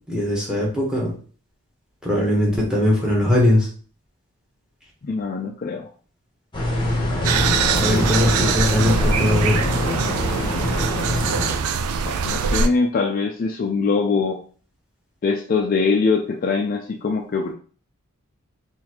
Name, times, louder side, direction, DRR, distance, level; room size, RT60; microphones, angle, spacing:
voice 1, 0.1-1.1 2.0-3.7 7.4-9.6, left 1 dB, 5° right, -3 dB, 1.0 m, -20 dB
voice 2, 5.0-5.9 12.0-14.4 15.2-17.5, left 4 dB, 40° left, 3 dB, 0.3 m, -22 dB
sound 1, 6.5-11.6, left 1 dB, 20° left, 0.8 m, -24 dB
sound 2, 7.2-12.7, right 6 dB, 85° right, 0.3 m, -23 dB
4.0 x 2.5 x 2.8 m, 0.41 s
head